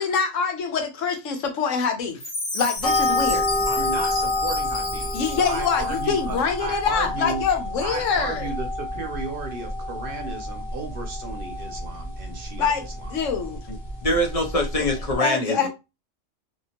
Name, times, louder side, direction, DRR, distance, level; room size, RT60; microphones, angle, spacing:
voice 1, 0.0-2.2 2.5-3.5 5.1-8.5 12.6-13.6 15.2-15.7, left 6 dB, 85° left, 1.1 m, -25 dB
Chime, 2.2-6.2, left 2 dB, 65° left, 1.1 m, -33 dB
sound 1, 2.8-15.2, left 2 dB, ahead, 1.2 m, -29 dB
voice 2, 3.7-5.1 5.5-7.4 7.8-13.1, right 3 dB, 55° right, 0.8 m, -34 dB
voice 3, 14.0-15.7, left 1 dB, 45° left, 0.5 m, -24 dB
2.7 x 2.5 x 2.8 m
omnidirectional pair, 1.3 m